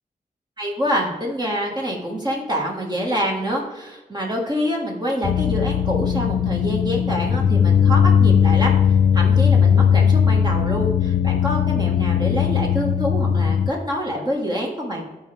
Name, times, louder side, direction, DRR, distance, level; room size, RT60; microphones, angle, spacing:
voice 1, 0.6-8.8 9.1-15.0, equal, 30° right, -2 dB, 1.6 m, -26 dB
sound 1, 5.2-13.7, left 7 dB, 75° left, 0.4 m, -18 dB
13.5 x 4.6 x 3.4 m, 1.2 s
wide cardioid pair, 130°, 15 cm